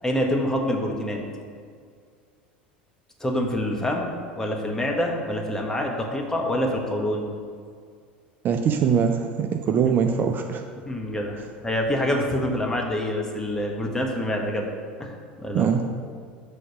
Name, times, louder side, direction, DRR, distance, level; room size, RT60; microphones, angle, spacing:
voice 1, 0.0-1.2 3.2-7.3 10.8-14.7 15.0-15.1 15.4-15.7, left 1 dB, 10° left, 0 dB, 1.2 m, -26 dB
voice 2, 8.4-10.6 15.5-15.8, right 7 dB, 35° right, 5 dB, 0.5 m, -22 dB
6.5 x 4.2 x 6.5 m, 2.1 s
figure-of-eight pair, 75°, 5 cm